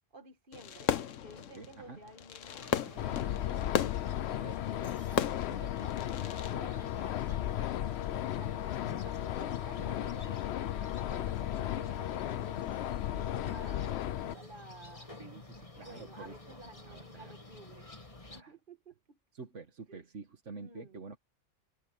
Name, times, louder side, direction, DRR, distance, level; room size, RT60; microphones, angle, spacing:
voice 1, 0.1-0.9 1.2-2.7 3.0-3.9 4.4-7.9 8.3-12.8 13.1-15.1 15.8-17.9 18.3-19.2 19.9-20.1 20.6-21.0, right 2 dB, 45° right, 1.7 m, -53 dB
Fireworks, 0.5-6.5, left 9 dB, 85° left, 1.2 m, -36 dB
voice 2, 1.6-2.0 13.4-13.9 15.2-16.3 16.8-17.3 18.3-18.5 19.3-21.2, right 4 dB, 75° right, 2.0 m, -48 dB
sound 1, 2.6-18.4, left 2 dB, 25° left, 2.3 m, -50 dB
sound 2, 3.0-14.3, left 12 dB, 65° left, 0.8 m, -35 dB
omnidirectional pair, 1.3 m